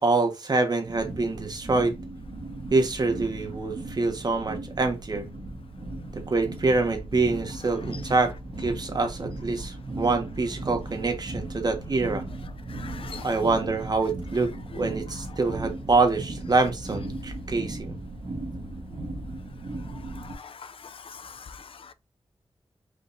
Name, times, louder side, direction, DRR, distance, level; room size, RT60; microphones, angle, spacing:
voice 1, 0.0-2.0 2.7-5.3 6.1-12.2 13.2-18.0, right 3 dB, 45° right, 1.3 m, -26 dB
sound 1, 0.8-20.3, right 2 dB, 70° right, 1.3 m, -37 dB
voice 2, 12.7-13.3 14.7-14.9 20.1-21.9, left 6 dB, 70° left, 0.5 m, -43 dB
5.1 x 4.1 x 2.5 m
wide cardioid pair, 85°, 10 cm